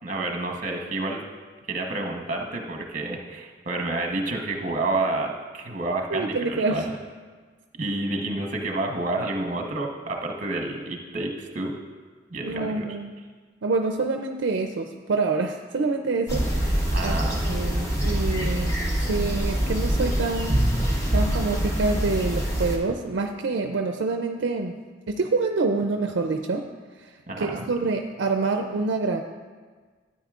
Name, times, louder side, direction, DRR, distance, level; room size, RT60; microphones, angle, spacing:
voice 1, 0.0-1.2 1.7-6.9 7.8-11.8 12.3-12.9 16.9-17.4 27.3-27.7, right 2 dB, 45° right, 2 dB, 1.0 m, -29 dB
voice 2, 6.1-6.8 12.4-13.2 13.6-17.2 17.5-18.8 19.1-20.8 21.1-24.7 25.1-26.7 27.4-29.2, right 3 dB, 70° right, 5 dB, 0.4 m, -26 dB
sound 1, 16.3-22.8, equal, 15° left, 1.0 m, -25 dB
12.5 x 8.7 x 2.4 m, 1.5 s
head